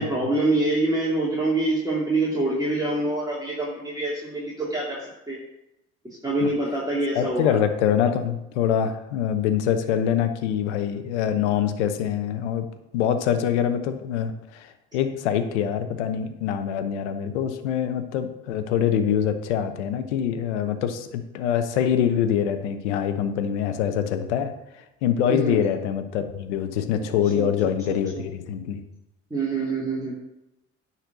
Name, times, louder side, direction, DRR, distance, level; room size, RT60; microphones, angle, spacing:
voice 1, 0.0-5.0 5.3-5.4 6.2-7.6 25.3-25.6 27.3-27.5 27.9-28.2 29.3-30.1, right 2 dB, 10° right, -6 dB, 2.9 m, -25 dB
voice 2, 7.1-12.7 12.9-24.5 25.0-28.8, left 9 dB, 90° left, 9 dB, 0.9 m, -24 dB
10.0 x 4.5 x 6.8 m, 0.89 s
hypercardioid pair, 60°, 34 cm